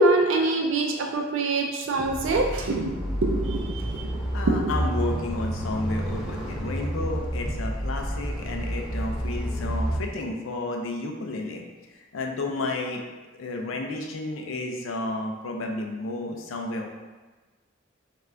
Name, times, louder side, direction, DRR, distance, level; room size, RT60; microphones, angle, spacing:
voice 1, 0.0-2.9 3.2-4.1 4.5-4.7, right 2 dB, 75° right, 2 dB, 0.4 m, -24 dB
sound 1, 2.0-10.0, equal, 5° right, 0.5 m, -30 dB
voice 2, 4.1-11.6 12.1-13.0 13.4-16.9, left 2 dB, 90° left, 2 dB, 0.4 m, -32 dB
3.5 x 2.4 x 3.2 m, 1.3 s
head